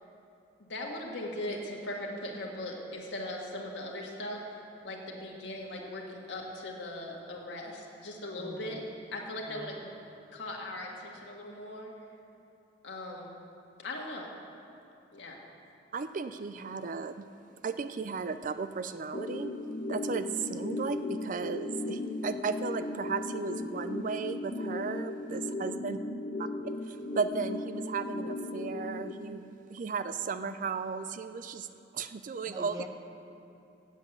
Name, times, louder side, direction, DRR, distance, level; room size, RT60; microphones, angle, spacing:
voice 1, 0.6-4.4 4.8-8.8 9.1-9.8 10.3-11.9 12.8-13.3 13.8-14.3 15.1-15.4, left 1 dB, 90° left, -1 dB, 1.7 m, -39 dB
voice 2, 8.4-8.8 9.5-9.9 32.5-32.9, right 2 dB, 20° right, 3 dB, 0.8 m, -44 dB
voice 3, 15.9-17.3 17.6-19.5 19.9-26.0 26.4-31.7 31.9-32.8, right 5 dB, 45° right, 11 dB, 0.4 m, -35 dB
sound 1, 19.1-29.1, left 2 dB, 35° left, 0.5 m, -36 dB
8.1 x 7.5 x 8.1 m, 2.7 s
head